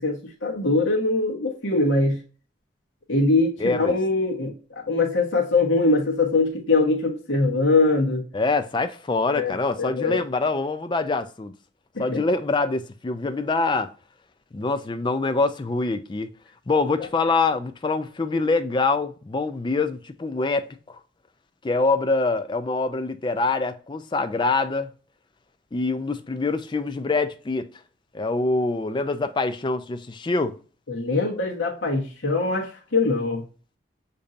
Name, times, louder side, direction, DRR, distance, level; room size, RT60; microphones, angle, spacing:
voice 1, 0.0-2.2 3.1-4.5 4.9-8.2 9.3-10.2 11.9-12.2 30.9-33.4, left 3 dB, 80° left, 1.1 m, -22 dB
voice 2, 3.6-4.0 8.3-11.5 12.0-13.9 14.5-16.3 16.7-21.0 21.6-24.9 25.7-27.7 28.1-30.6, left 3 dB, 25° left, 0.3 m, -25 dB
6.7 x 2.7 x 2.4 m
head